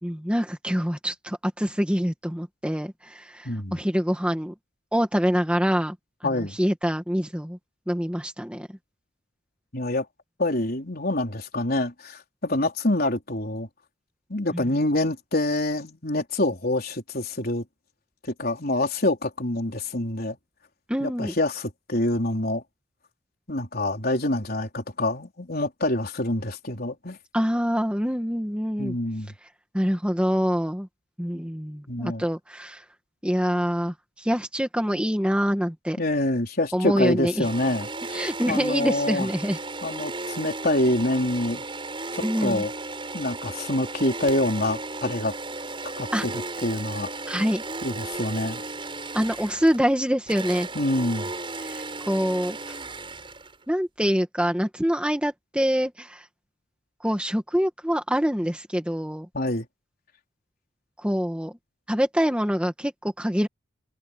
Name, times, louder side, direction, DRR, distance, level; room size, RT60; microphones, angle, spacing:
voice 1, 0.0-4.5 4.9-6.0 6.2-7.6 7.9-8.7 20.9-21.3 27.3-29.0 29.7-30.9 31.2-32.8 33.2-36.0 36.7-37.5 38.1-39.6 42.2-42.6 46.1-46.2 47.3-47.6 49.1-50.7 51.6-52.8 53.7-56.3 57.0-59.3 61.0-61.6 61.9-63.5, equal, 5° right, 1.8 m, -25 dB
voice 2, 3.4-3.8 6.2-6.6 9.7-10.1 10.4-13.7 14.3-17.6 18.2-20.4 21.0-22.6 23.5-27.2 28.8-29.3 31.9-32.3 36.0-39.3 39.8-41.6 42.1-42.7 43.1-45.3 45.8-47.1 47.8-48.6 50.8-51.3 59.3-59.7, left 1 dB, 45° left, 4.2 m, -26 dB
sound 1, 37.4-53.7, right 3 dB, 25° right, 7.8 m, -35 dB
head